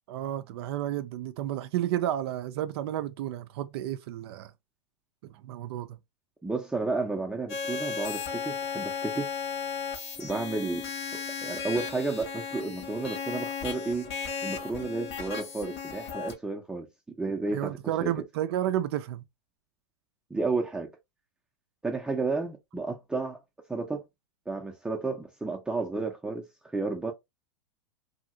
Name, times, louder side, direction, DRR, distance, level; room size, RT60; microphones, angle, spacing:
voice 1, 0.1-4.5 5.4-6.0 17.5-19.2, right 12 dB, 60° right, 0.4 m, -31 dB
voice 2, 6.4-9.4 10.2-10.9 11.4-14.1 14.4-16.9 17.2-18.1 20.3-20.9 21.8-23.4 23.7-24.1 24.5-26.4 26.7-27.1, right 3 dB, 5° right, 0.5 m, -32 dB
sound 1, 7.5-16.3, left 6 dB, 60° left, 1.3 m, -35 dB
2.7 x 2.7 x 2.6 m
hypercardioid pair, 100°, 15 cm